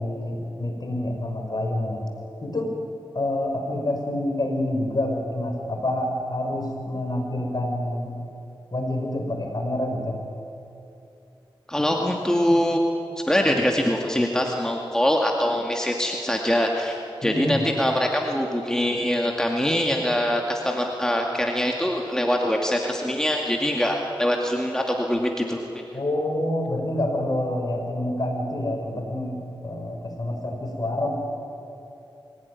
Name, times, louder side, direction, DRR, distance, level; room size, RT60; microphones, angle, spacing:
voice 1, 0.0-2.0 2.4-2.8 3.1-8.1 8.7-10.2 17.2-17.6 25.9-31.1, left 1 dB, 45° left, 2 dB, 5.8 m, -27 dB
voice 2, 11.7-12.8 13.3-25.8, equal, 5° left, 1 dB, 2.3 m, -23 dB
23.5 x 16.5 x 9.8 m, 2.8 s
cardioid pair, 50°, 9 cm